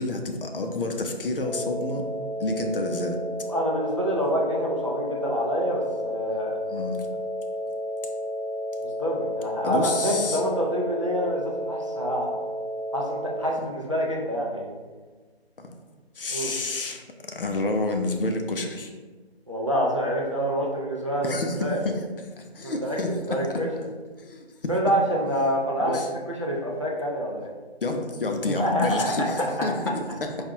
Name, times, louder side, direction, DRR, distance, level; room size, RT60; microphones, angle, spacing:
voice 1, 0.0-2.1 2.4-3.2 6.7-7.1 9.6-10.4 15.6-15.7 16.2-17.0 17.3-18.9 21.2-22.0 22.3-23.6 24.2-24.7 25.8-26.1 27.8-30.4, left 2 dB, 60° left, 4 dB, 0.6 m, -29 dB
sound 1, 1.4-13.4, equal, 80° left, 1.1 m, -32 dB
voice 2, 3.5-6.6 8.8-12.4 12.9-14.7 16.3-16.5 19.5-21.8 22.6-23.0 23.3-23.7 24.7-26.0 26.3-27.5 28.5-29.7, equal, 30° right, -2 dB, 0.4 m, -27 dB
4.7 x 2.4 x 2.8 m, 1.3 s
figure-of-eight pair, 160°, 32 cm